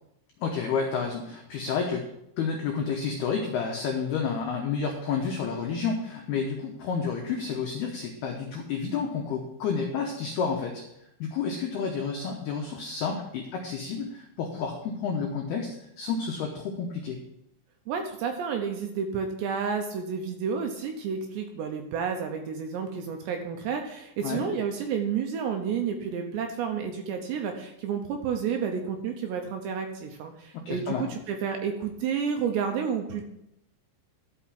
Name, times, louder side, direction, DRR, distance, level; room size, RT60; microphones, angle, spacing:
voice 1, 0.4-2.0 2.4-10.8 11.2-17.2 24.2-24.4 30.5-31.1, left 5 dB, 85° left, 1 dB, 2.2 m, -30 dB
voice 2, 17.9-33.3, right 6 dB, 80° right, 4 dB, 2.6 m, -30 dB
12.0 x 5.7 x 5.8 m, 0.81 s
omnidirectional pair, 5.9 m